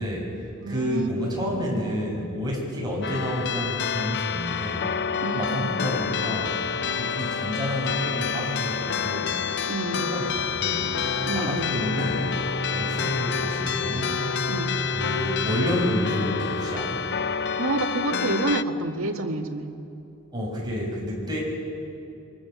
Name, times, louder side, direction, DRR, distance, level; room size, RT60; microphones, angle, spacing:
voice 1, 0.0-4.9 5.3-6.6 7.0-9.4 10.0-12.3 12.7-14.2 14.8-17.0 20.3-21.4, equal, 20° right, -3 dB, 7.1 m, -29 dB
voice 2, 0.6-1.5 5.2-5.8 9.7-10.0 11.3-11.7 14.5-14.7 17.6-19.7, right 2 dB, 85° right, 3 dB, 1.9 m, -29 dB
sound 1, 3.0-18.6, left 7 dB, 55° left, 0.6 m, -28 dB
sound 2, 10.8-15.8, right 1 dB, 80° left, 6.6 m, -34 dB
27.5 x 24.5 x 7.2 m, 2.7 s
head